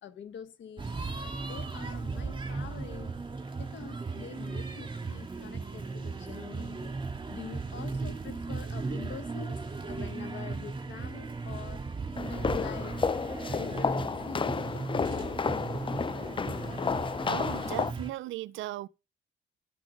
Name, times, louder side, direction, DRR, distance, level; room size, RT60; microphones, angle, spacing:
voice 1, 0.0-0.9 1.2-3.1 3.5-6.8 7.3-9.6 9.9-11.8 12.2-13.0 13.5-15.9, left 8 dB, 70° left, 1.5 m, -45 dB
sound 1, 0.8-18.1, right 4 dB, 25° right, 2.5 m, -37 dB
sound 2, 12.1-17.9, left 5 dB, 25° left, 0.5 m, -31 dB
voice 2, 17.3-18.9, right 16 dB, 75° right, 0.5 m, -37 dB
12.0 x 6.2 x 5.1 m
cardioid pair, 90°, 20 cm